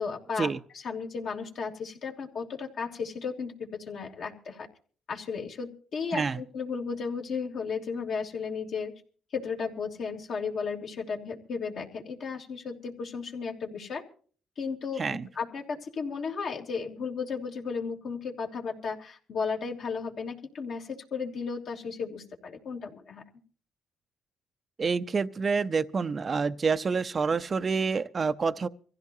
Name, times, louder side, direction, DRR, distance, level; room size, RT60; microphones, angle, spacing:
voice 1, 0.0-4.7 5.1-8.9 9.3-14.0 14.6-23.2, left 5 dB, 65° left, 3.1 m, -34 dB
voice 2, 24.8-28.7, right 5 dB, 40° right, 0.6 m, -27 dB
25.0 x 15.5 x 2.8 m
cardioid pair, 90°, 0 cm